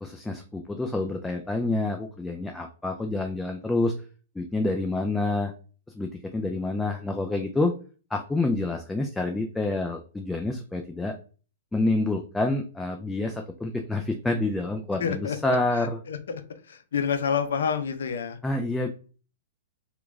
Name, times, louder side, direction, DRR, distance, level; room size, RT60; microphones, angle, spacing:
voice 1, 0.0-3.9 4.4-5.5 5.9-7.7 8.1-11.1 11.7-16.0 18.4-18.9, left 2 dB, 5° left, 3 dB, 0.3 m, -28 dB
voice 2, 15.0-15.4 15.7-16.4 16.7-18.4, left 7 dB, 80° left, 9 dB, 0.5 m, -28 dB
3.0 x 2.3 x 3.5 m, 0.38 s
hypercardioid pair, 135°, 0 cm